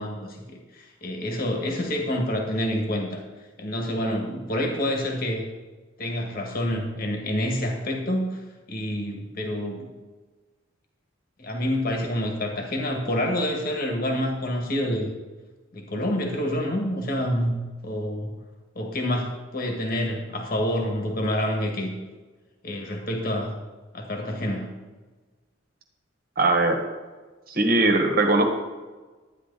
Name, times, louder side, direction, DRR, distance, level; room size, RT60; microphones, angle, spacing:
voice 1, 0.0-3.2 3.6-5.5 6.0-8.4 8.7-9.9 11.4-15.1 15.7-17.6 17.8-18.3 18.8-21.9 22.6-23.6 23.9-24.7, equal, 50° left, 2 dB, 2.0 m, -27 dB
voice 2, 26.4-26.8 27.5-28.4, right 2 dB, 50° right, 4 dB, 1.6 m, -20 dB
11.5 x 9.8 x 4.2 m, 1.3 s
head